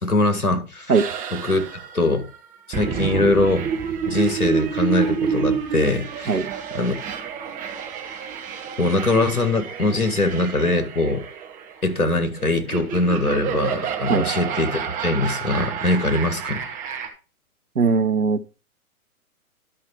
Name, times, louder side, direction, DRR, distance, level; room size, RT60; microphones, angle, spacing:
voice 1, 0.0-1.0 1.3-1.6 1.9-2.2 2.7-3.7 4.1-6.5 6.7-6.9 8.8-11.2 11.8-16.6, left 2 dB, 90° left, 2.1 m, -22 dB
sound 1, 0.9-17.1, right 7 dB, 20° right, 1.3 m, -29 dB
voice 2, 17.8-18.6, right 5 dB, 90° right, 0.9 m, -20 dB
11.5 x 5.8 x 4.4 m
figure-of-eight pair, 125°, 43 cm